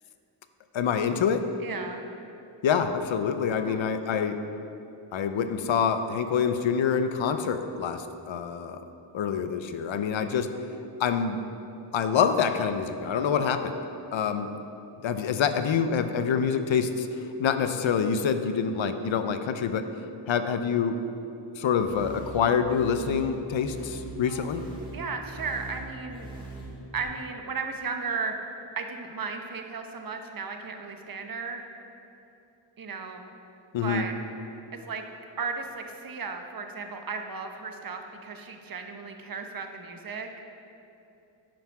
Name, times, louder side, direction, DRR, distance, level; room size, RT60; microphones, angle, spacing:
voice 1, 0.7-1.5 2.6-4.4 5.1-8.8 9.1-10.5 11.0-11.4 11.9-13.8 14.1-14.5 15.0-19.9 20.3-21.0 21.6-24.6 33.7-34.0, left 7 dB, 75° left, 9 dB, 0.7 m, -26 dB
voice 2, 1.6-2.0 3.6-3.8 24.3-24.5 24.9-26.3 26.9-28.4 28.8-31.6 32.8-33.3 33.8-34.1 34.7-35.1 35.4-40.3, right 5 dB, 45° right, 4 dB, 1.0 m, -35 dB
sound 1, 21.9-27.0, right 2 dB, 10° right, 2.3 m, -41 dB
10.0 x 5.8 x 5.9 m, 2.9 s
wide cardioid pair, 85°, 47 cm